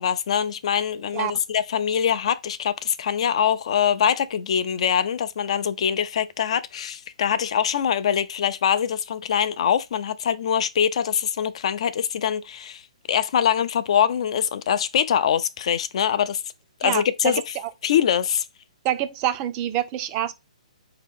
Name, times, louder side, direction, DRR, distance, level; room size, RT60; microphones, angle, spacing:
voice 1, 0.0-12.8 13.1-16.4 16.8-17.5 17.8-18.4, left 8 dB, 55° left, 0.4 m, -23 dB
voice 2, 16.8-17.7 18.8-20.3, right 12 dB, 25° right, 0.4 m, -27 dB
4.4 x 2.8 x 3.5 m
hypercardioid pair, 155°, 4 cm